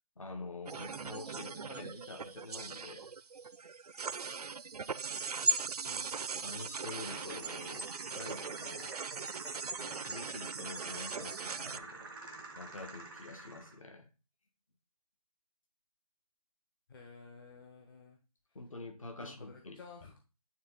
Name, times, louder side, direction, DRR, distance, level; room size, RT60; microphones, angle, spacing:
voice 1, 0.2-3.1 6.4-9.0 9.7-12.1 12.6-14.1 18.5-19.8, left 3 dB, 60° left, 1.8 m, -47 dB
sound 1, 0.7-11.8, right 4 dB, 85° right, 0.5 m, -39 dB
sound 2, 6.8-13.8, right 3 dB, ahead, 0.4 m, -50 dB
voice 2, 16.9-18.2 19.2-20.2, left 4 dB, 35° left, 1.0 m, -52 dB
9.3 x 3.3 x 3.9 m
figure-of-eight pair, 160°, 19 cm